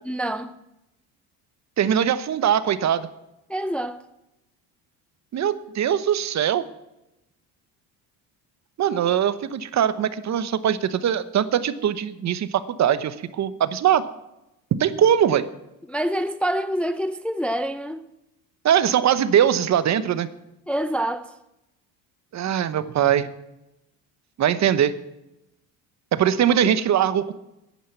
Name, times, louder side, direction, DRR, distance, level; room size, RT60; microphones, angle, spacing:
voice 1, 0.0-0.5 3.5-4.0 15.9-18.0 20.7-21.3 26.5-26.6, right 1 dB, 5° left, 0.5 m, -26 dB
voice 2, 1.8-3.1 5.3-6.6 8.8-14.0 14.7-15.4 18.6-20.3 22.3-23.3 24.4-24.9 26.1-27.3, right 9 dB, 45° right, 1.0 m, -21 dB
10.5 x 10.5 x 7.9 m
supercardioid pair, 100°, 39 cm